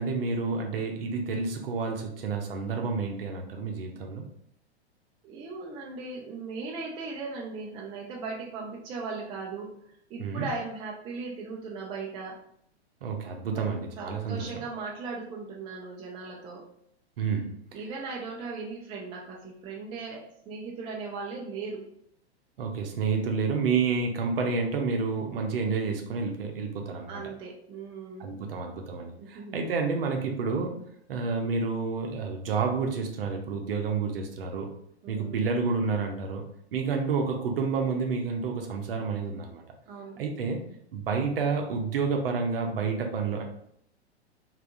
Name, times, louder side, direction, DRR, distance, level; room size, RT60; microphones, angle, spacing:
voice 1, 0.0-4.2 10.2-10.5 13.0-14.5 17.2-17.5 22.6-27.2 28.2-30.8 31.1-34.7 35.1-36.4 36.7-39.6 40.2-40.6 40.9-43.4, right 5 dB, 60° right, 3 dB, 0.7 m, -29 dB
voice 2, 5.2-12.4 13.5-16.6 17.7-21.9 27.1-28.4 29.2-29.6 35.0-35.5 39.9-40.2, right 4 dB, 15° right, -2 dB, 0.4 m, -38 dB
3.4 x 2.6 x 2.6 m, 0.71 s
figure-of-eight pair, 105°, 33 cm